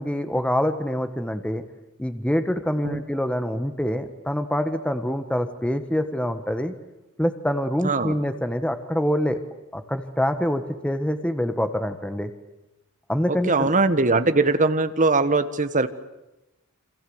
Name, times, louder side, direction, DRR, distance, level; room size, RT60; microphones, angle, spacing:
voice 1, 0.0-1.6 2.0-6.7 7.2-9.4 9.7-12.3 13.1-13.7, equal, 5° left, 8 dB, 1.4 m, -25 dB
voice 2, 7.8-8.1 13.5-15.9, right 3 dB, 35° right, 11 dB, 1.4 m, -21 dB
28.0 x 26.0 x 8.0 m, 0.96 s
head